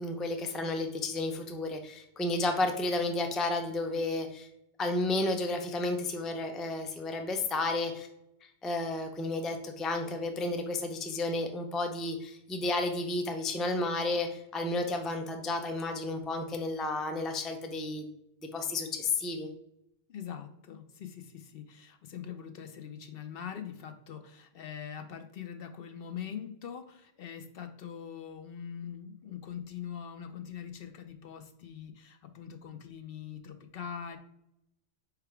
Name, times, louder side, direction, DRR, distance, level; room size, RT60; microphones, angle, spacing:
voice 1, 0.0-4.5 4.8-8.1 8.4-18.1 18.5-19.5, left 2 dB, ahead, 5 dB, 0.4 m, -32 dB
voice 2, 20.1-34.2, left 8 dB, 65° left, 8 dB, 0.7 m, -43 dB
4.9 x 4.8 x 4.6 m, 0.81 s
omnidirectional pair, 1.1 m